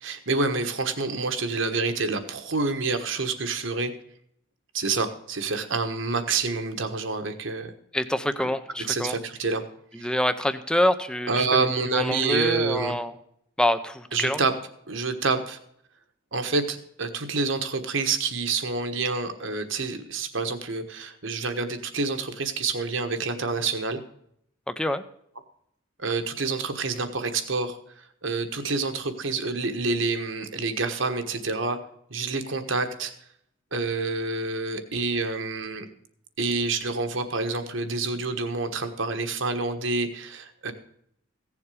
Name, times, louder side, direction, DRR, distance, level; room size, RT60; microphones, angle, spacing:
voice 1, 0.0-3.9 4.7-7.7 8.4-8.5 8.9-9.6 9.9-10.1 11.3-13.0 14.1-14.5 14.9-15.6 16.3-24.0 26.0-27.8 28.2-31.8 32.1-33.1 33.7-35.8 36.4-40.7, right 3 dB, 65° right, 7 dB, 1.3 m, -27 dB
voice 2, 7.9-9.2 9.9-11.5 11.9-13.1 13.6-14.4 24.7-25.0, left 1 dB, 5° left, 11 dB, 0.6 m, -26 dB
16.0 x 7.2 x 4.9 m, 0.71 s
head